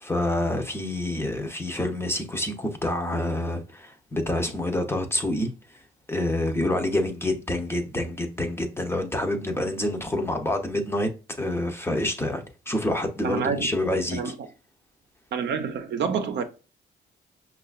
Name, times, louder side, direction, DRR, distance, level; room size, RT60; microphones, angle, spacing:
voice 1, 0.0-5.5 6.1-11.1 11.4-14.3, left 1 dB, 10° left, 0.6 m, -27 dB
voice 2, 13.2-13.7 14.1-14.3 15.3-16.4, right 6 dB, 60° right, 0.6 m, -27 dB
5.4 x 2.4 x 2.4 m
cardioid pair, 90°, 20 cm